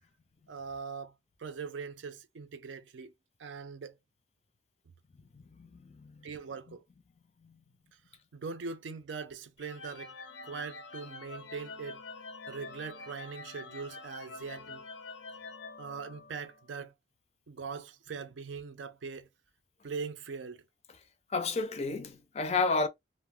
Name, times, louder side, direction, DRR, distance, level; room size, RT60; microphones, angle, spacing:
voice 1, 0.5-1.1 1.4-3.1 3.4-4.0 6.2-6.8 8.3-10.1 10.4-12.0 12.5-14.8 15.8-16.9 17.5-19.3 19.8-20.6, right 5 dB, 80° right, 0.5 m, -41 dB
sound 1, 9.6-16.6, left 3 dB, 80° left, 0.6 m, -46 dB
voice 2, 21.3-22.9, left 3 dB, 35° left, 0.4 m, -29 dB
2.5 x 2.0 x 3.4 m
head